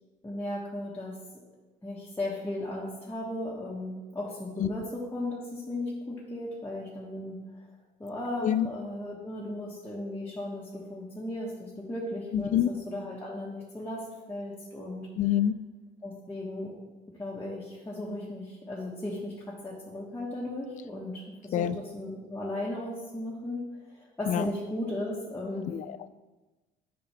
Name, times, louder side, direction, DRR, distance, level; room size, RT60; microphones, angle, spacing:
voice 1, 0.2-1.2 1.8-7.7 8.0-15.1 16.0-16.7 17.2-25.7, left 1 dB, 10° left, -7 dB, 1.3 m, -36 dB
voice 2, 12.3-12.7 15.2-15.6 21.5-21.8 24.3-24.5 25.7-26.1, left 10 dB, 50° left, 14 dB, 0.4 m, -26 dB
7.7 x 5.1 x 3.3 m, 1.2 s
cardioid pair, 110°, 17 cm